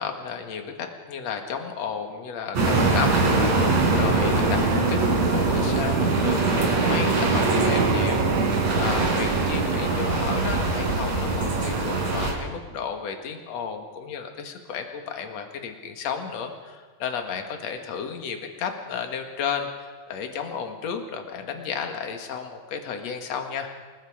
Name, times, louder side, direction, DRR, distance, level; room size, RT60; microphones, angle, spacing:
voice 1, 0.0-2.6 2.9-23.7, left 6 dB, 55° left, 4 dB, 2.7 m, -33 dB
sound 1, 2.5-12.3, right 3 dB, 50° right, 4.6 m, -22 dB
Wind instrument woodwind instrument, 5.5-10.5, right 13 dB, 75° right, 2.0 m, -33 dB
28.0 x 21.0 x 5.0 m, 1.5 s
omnidirectional pair, 4.1 m